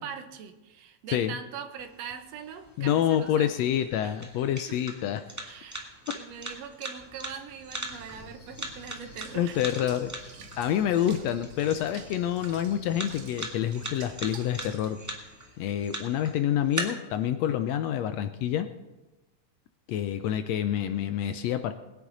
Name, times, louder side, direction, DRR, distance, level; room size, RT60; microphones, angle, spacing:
voice 1, 0.0-3.7 4.0-4.1 4.7-4.8 5.4-9.6 9.8-9.9, right 7 dB, 70° right, 5 dB, 2.1 m, -42 dB
sound 1, 1.8-16.8, right 1 dB, 10° right, 1.0 m, -42 dB
voice 2, 2.8-5.2 9.3-10.1 10.6-15.0 15.6-18.7 19.9-21.7, left 10 dB, 80° left, 9 dB, 1.6 m, -27 dB
Cricket, 7.9-13.3, left 3 dB, 55° left, 3.1 m, -50 dB
Water / Bathtub (filling or washing), 9.2-15.0, right 8 dB, 85° right, 2.8 m, -50 dB
21.0 x 9.8 x 4.0 m, 1.1 s
omnidirectional pair, 3.4 m